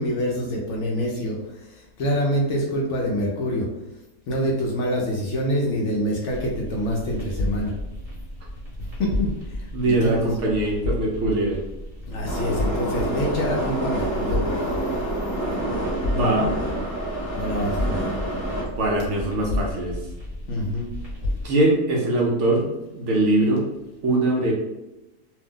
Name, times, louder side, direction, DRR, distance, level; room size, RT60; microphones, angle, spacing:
voice 1, 0.0-3.7 4.3-7.7 9.0-10.2 12.1-14.8 17.3-18.0 20.5-20.9, equal, 65° left, -2 dB, 0.8 m, -26 dB
sound 1, 6.3-21.5, left 1 dB, 35° right, 1.2 m, -32 dB
voice 2, 9.7-11.6 16.1-16.5 18.8-20.0 21.4-22.7 22.9-23.6 24.0-24.5, right 2 dB, 65° right, -2 dB, 0.8 m, -22 dB
Subway metro underground, 12.3-18.6, right 1 dB, 15° left, 0.6 m, -28 dB
2.7 x 2.0 x 3.6 m, 0.98 s
omnidirectional pair, 1.6 m